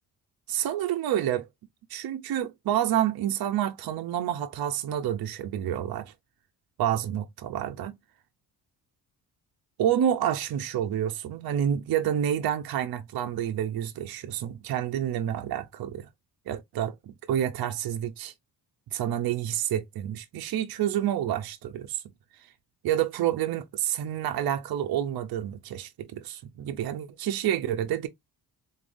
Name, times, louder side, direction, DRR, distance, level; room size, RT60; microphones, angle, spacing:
voice 1, 0.5-1.5 1.9-6.1 6.8-8.0 9.8-16.1 16.5-18.3 18.9-22.0 22.8-28.1, right 10 dB, 65° right, 0.7 m, -28 dB
4.0 x 3.6 x 2.6 m
cardioid pair, 90°, 40 cm